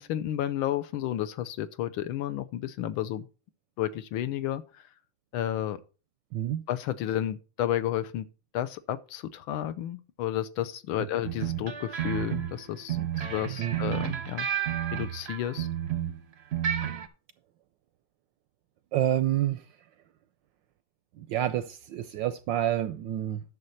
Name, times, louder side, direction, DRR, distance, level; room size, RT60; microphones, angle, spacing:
voice 1, 0.0-3.3 3.8-4.9 5.3-5.8 6.7-8.3 8.5-14.5 14.9-15.7, left 11 dB, 75° left, 1.4 m, -32 dB
voice 2, 6.3-6.6 13.0-13.1 13.6-13.7 18.9-19.6 21.2-23.4, right 12 dB, 75° right, 1.1 m, -28 dB
sound 1, 11.2-16.2 16.5-17.1, right 10 dB, 55° right, 0.7 m, -31 dB
11.0 x 6.6 x 4.1 m
omnidirectional pair, 2.4 m